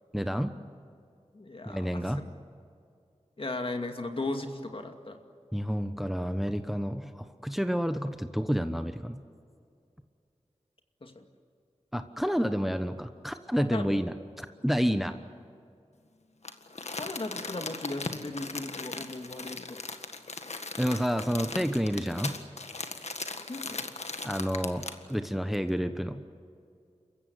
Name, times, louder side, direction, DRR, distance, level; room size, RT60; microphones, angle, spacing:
voice 1, 0.1-0.5 1.6-2.2 5.5-9.2 11.9-15.2 20.8-22.3 24.2-26.2, equal, ahead, 9 dB, 1.1 m, -29 dB
voice 2, 1.3-2.2 3.4-5.2 11.0-11.3 13.6-14.0 17.0-19.8 23.5-23.9, left 2 dB, 50° left, 5 dB, 2.4 m, -37 dB
Crumpling crinkling, 16.4-25.1 25.5-25.6, left 3 dB, 70° left, 1.7 m, -38 dB
28.5 x 15.5 x 9.6 m, 2.4 s
wide cardioid pair, 60°, 12 cm